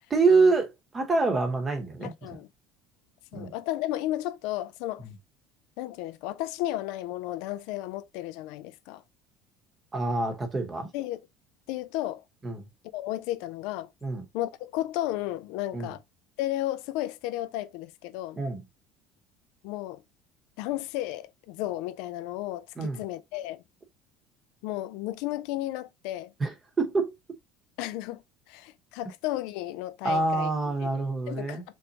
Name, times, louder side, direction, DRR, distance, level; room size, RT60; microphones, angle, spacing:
voice 1, 0.1-2.1 3.3-3.5 9.9-10.9 12.4-12.6 14.0-14.2 15.7-15.9 18.4-18.6 22.8-23.0 26.4-27.1 30.0-31.6, right 3 dB, 15° right, 0.9 m, -26 dB
voice 2, 2.0-2.5 3.3-5.0 5.8-9.0 10.9-11.2 11.7-12.2 12.9-13.9 14.3-16.0 16.4-18.4 19.6-20.0 20.6-23.6 24.6-26.3 27.8-28.2 28.5-30.9 31.3-31.6, left 15 dB, 65° left, 0.4 m, -33 dB
4.0 x 3.4 x 2.8 m
cardioid pair, 175°, 0 cm